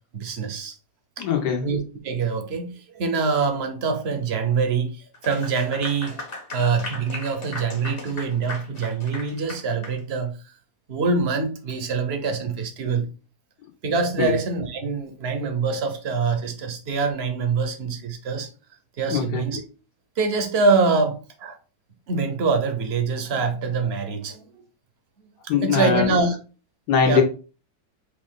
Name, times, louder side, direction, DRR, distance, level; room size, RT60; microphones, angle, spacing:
voice 1, 0.1-0.8 1.2-1.3 1.6-6.2 6.5-10.4 10.9-13.1 13.8-18.5 19.0-19.6 20.2-21.6 22.1-24.5 25.4-26.4 27.0-27.2, right 4 dB, 55° right, 0.8 m, -24 dB
voice 2, 1.2-1.7 14.2-14.3 19.1-19.4 25.5-26.2 26.9-27.2, left 6 dB, 80° left, 1.6 m, -21 dB
Clapping / Applause, 5.1-10.0, left 2 dB, 40° left, 1.3 m, -37 dB
4.7 x 2.6 x 3.7 m
omnidirectional pair, 1.7 m